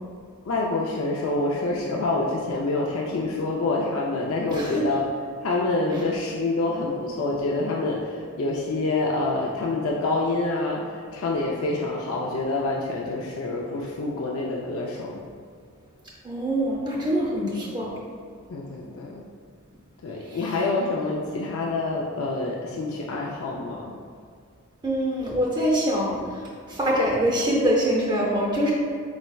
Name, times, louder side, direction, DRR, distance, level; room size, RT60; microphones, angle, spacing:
voice 1, 0.4-5.0 5.4-15.2 17.4-17.5 18.5-19.2 20.0-23.9, left 2 dB, 85° left, -2 dB, 0.4 m, -27 dB
voice 2, 4.5-4.8 16.2-17.9 24.8-26.4 26.7-28.7, equal, 20° right, -4 dB, 0.6 m, -24 dB
4.3 x 4.2 x 2.3 m, 2.1 s
head